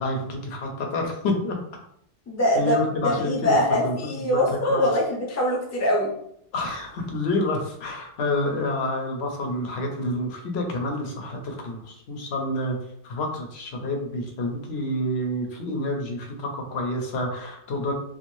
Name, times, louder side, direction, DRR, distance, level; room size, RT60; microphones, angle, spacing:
voice 1, 0.0-1.6 2.6-3.6 3.8-4.9 6.5-12.8 13.0-17.9, left 1 dB, 85° left, 2 dB, 0.9 m, -28 dB
voice 2, 2.3-6.1, left 1 dB, 20° left, -2 dB, 0.5 m, -23 dB
2.6 x 2.3 x 3.0 m, 0.72 s
omnidirectional pair, 1.1 m